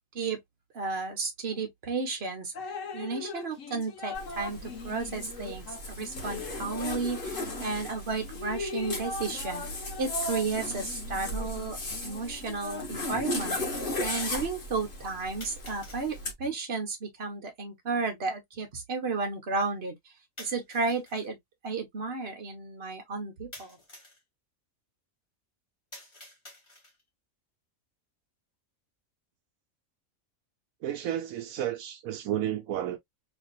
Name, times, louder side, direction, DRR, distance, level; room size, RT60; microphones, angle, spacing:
voice 1, 0.7-2.5 2.9-9.6 10.0-11.8 12.0-20.1 20.4-21.4 21.6-23.8, right 4 dB, 50° right, 1.5 m, -33 dB
Drip, 2.5-7.8 8.2-13.6, left 3 dB, 70° left, 1.2 m, -40 dB
Zipper (clothing), 4.1-16.3, left 2 dB, 40° left, 1.4 m, -36 dB
sound 1, 15.4-16.1 20.4-21.3 23.5-24.2 25.9-27.1, left 1 dB, 20° left, 1.5 m, -49 dB
voice 2, 30.8-33.0, right 11 dB, 85° right, 1.0 m, -32 dB
3.3 x 3.3 x 2.5 m
omnidirectional pair, 1.4 m